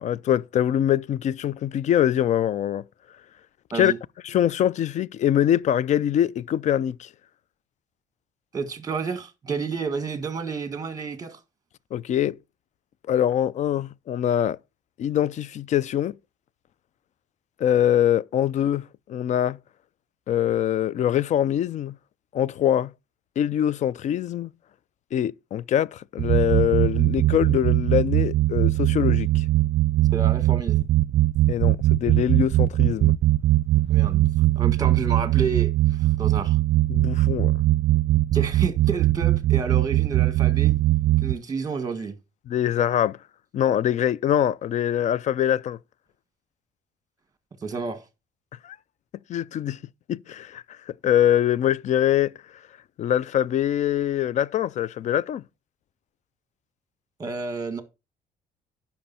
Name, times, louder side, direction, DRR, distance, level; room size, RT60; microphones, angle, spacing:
voice 1, 0.0-2.8 3.7-3.9 4.2-7.1 11.9-12.4 13.1-14.6 15.0-16.2 17.6-19.6 20.3-22.0 22.3-22.9 23.4-24.5 25.1-29.4 31.5-33.1 36.9-37.5 42.5-43.2 43.5-45.8 48.6-48.8 49.3-49.8 50.1-50.6 51.0-52.3 53.0-55.4, left 10 dB, 45° left, 0.4 m, -23 dB
voice 2, 8.5-11.4 30.1-30.9 33.9-34.3 34.6-36.6 38.3-40.7 41.2-42.1 47.6-48.0 57.2-57.8, right 5 dB, 20° right, 1.8 m, -30 dB
sound 1, 26.2-41.4, right 15 dB, 55° right, 0.4 m, -21 dB
10.5 x 6.1 x 4.2 m
cardioid pair, 110°, 17 cm